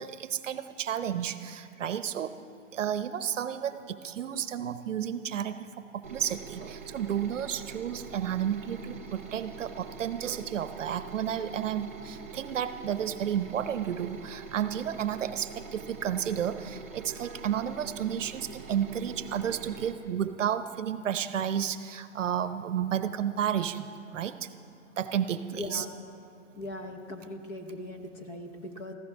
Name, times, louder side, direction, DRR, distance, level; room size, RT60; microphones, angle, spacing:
voice 1, 0.0-2.4 2.7-24.5 25.0-25.9, right 9 dB, 70° right, 12 dB, 0.8 m, -32 dB
sound 1, 6.0-19.9, right 5 dB, 10° right, 0.4 m, -45 dB
voice 2, 25.5-25.9 26.5-28.9, left 1 dB, 20° left, 4 dB, 0.9 m, -39 dB
20.0 x 15.0 x 3.6 m, 2.5 s
hypercardioid pair, 150°, 39 cm